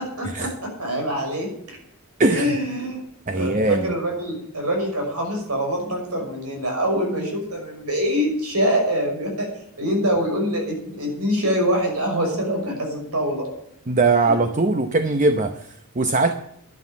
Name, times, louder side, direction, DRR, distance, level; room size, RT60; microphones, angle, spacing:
voice 1, 0.2-1.8 2.3-3.0 3.3-9.5 9.8-13.5 14.3-14.4, equal, 85° right, 2 dB, 6.1 m, -24 dB
voice 2, 2.2-2.6 3.3-3.9 13.9-16.4, right 3 dB, 35° right, 8 dB, 0.8 m, -21 dB
12.0 x 11.0 x 7.2 m, 0.73 s
head